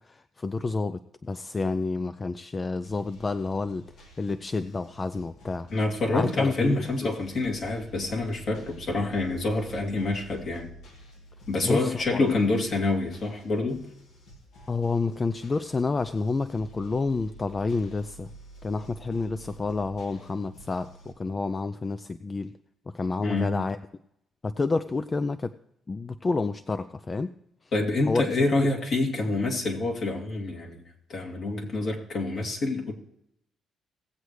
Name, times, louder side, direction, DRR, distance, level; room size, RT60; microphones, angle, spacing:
voice 1, 0.0-5.7 6.1-7.2 11.6-12.2 14.7-18.3 18.6-22.5 22.9-23.8 24.4-25.6 25.9-27.4 27.6-27.7 28.1-28.2 28.6-28.7, left 3 dB, 30° left, 11 dB, 0.4 m, -29 dB
sound 1, 2.8-21.1, right 1 dB, 85° left, 2.7 m, -50 dB
voice 2, 5.7-10.7 11.5-13.9 23.2-23.6 27.7-30.8 31.1-32.9, left 2 dB, 60° left, -1 dB, 2.6 m, -27 dB
18.0 x 8.0 x 3.2 m, 0.78 s
cardioid pair, 90°, 0 cm